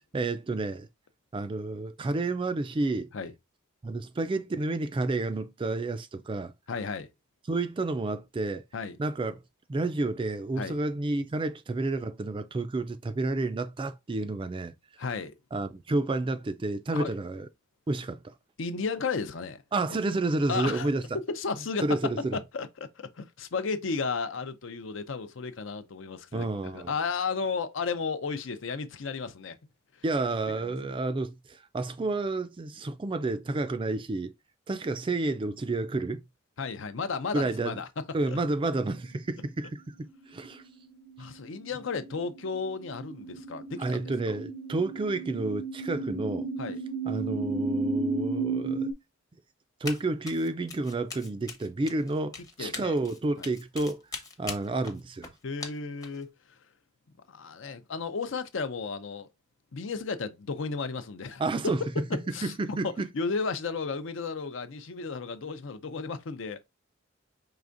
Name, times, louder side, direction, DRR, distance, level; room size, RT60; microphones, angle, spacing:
voice 1, 0.1-0.9 1.3-3.1 3.8-6.5 7.5-8.6 9.0-9.4 9.7-14.7 15.5-17.5 17.9-18.3 19.7-21.0 21.8-22.4 26.3-26.9 30.0-34.3 34.7-36.2 37.3-37.8 38.1-39.8 40.3-40.6 43.8-46.5 47.0-48.9 49.8-54.0 54.4-55.3 61.4-61.8 62.4-63.1, right 2 dB, 25° right, 0.3 m, -30 dB
voice 2, 6.7-7.1 8.7-9.0 10.6-10.7 15.0-15.3 16.9-17.2 18.6-19.6 20.5-20.9 21.1-21.8 22.3-29.6 30.6-30.7 36.6-37.9 38.3-38.4 41.2-44.0 46.6-46.8 52.6-52.9 53.4-53.5 55.4-56.6 57.3-59.3 59.7-61.7 62.3-66.6, left 4 dB, 65° left, 0.5 m, -34 dB
sound 1, 40.3-48.9, right 3 dB, 80° right, 0.6 m, -34 dB
Run, 49.9-50.0 50.3-56.2, left 3 dB, 20° left, 0.7 m, -41 dB
4.8 x 3.3 x 2.5 m
head